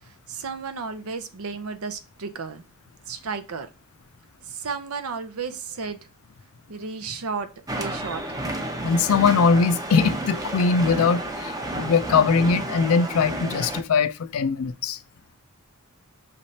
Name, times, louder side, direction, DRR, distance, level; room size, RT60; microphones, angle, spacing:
voice 1, 0.0-2.6 3.1-3.7 4.4-6.1 6.7-7.5 7.7-8.4, right 5 dB, 85° right, 0.7 m, -33 dB
sound 1, 7.7-13.8, right 1 dB, 15° right, 0.6 m, -31 dB
voice 2, 8.8-15.0, left 5 dB, 75° left, 0.4 m, -21 dB
5.1 x 3.2 x 2.7 m
head